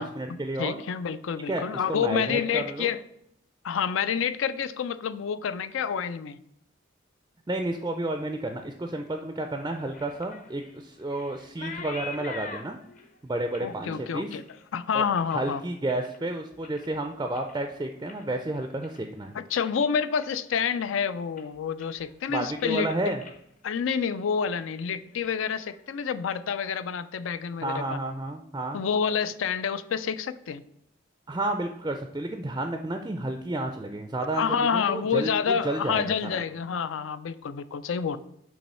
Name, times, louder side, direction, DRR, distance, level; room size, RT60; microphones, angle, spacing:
voice 1, 0.0-0.8 1.5-1.6 1.9-2.9 7.5-12.8 13.2-14.3 14.9-15.0 15.3-19.3 22.3-23.2 27.6-28.8 31.3-34.4 34.7-36.4, right 2 dB, 20° right, 5 dB, 0.4 m, -31 dB
voice 2, 0.6-3.0 3.6-6.4 13.6-14.4 14.7-15.6 19.3-23.2 23.6-28.0 28.7-30.6 34.3-38.2, left 7 dB, 75° left, 14 dB, 0.4 m, -28 dB
sound 1, 9.5-16.2 16.5-17.0 17.3-19.8 20.1-20.5 20.8-21.0 21.4-22.2 22.5-22.8 23.2-23.4 23.7-24.1 24.4-26.2, left 4 dB, 40° left, 0.7 m, -46 dB
7.2 x 3.1 x 5.4 m, 0.74 s
head